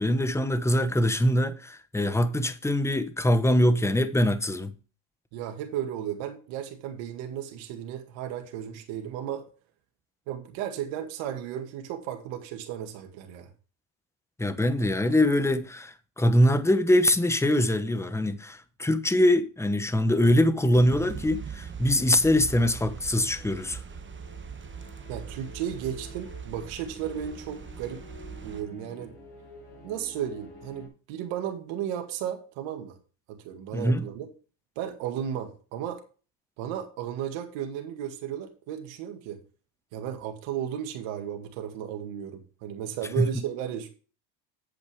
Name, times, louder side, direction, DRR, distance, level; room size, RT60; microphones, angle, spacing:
voice 1, 0.0-4.7 14.4-23.8 33.7-34.1 43.2-43.3, left 1 dB, 5° left, 0.9 m, -23 dB
voice 2, 5.3-9.4 10.3-13.5 25.1-28.0 28.4-29.1 29.8-33.0 33.3-34.3 34.8-36.0 36.6-39.4 39.9-43.9, right 10 dB, 75° right, 2.1 m, -34 dB
sound 1, 20.7-28.6, right 6 dB, 25° right, 1.1 m, -41 dB
sound 2, 21.9-30.9, left 3 dB, 55° left, 4.4 m, -50 dB
8.3 x 8.1 x 3.5 m
supercardioid pair, 95°, 46 cm